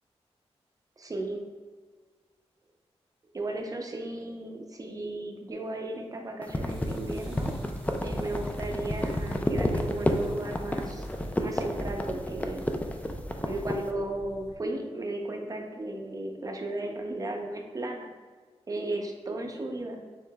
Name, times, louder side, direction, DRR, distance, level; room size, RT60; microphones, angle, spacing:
voice 1, 1.0-1.4 3.3-7.5 8.0-11.1 11.4-12.7 13.4-18.1 18.7-20.0, right 2 dB, 35° right, 2 dB, 0.7 m, -35 dB
sound 1, 6.4-13.8, left 1 dB, 15° left, 0.4 m, -30 dB
sound 2, 6.7-14.6, equal, 5° right, 1.1 m, -42 dB
6.6 x 3.1 x 2.3 m, 1.5 s
wide cardioid pair, 80°, 11 cm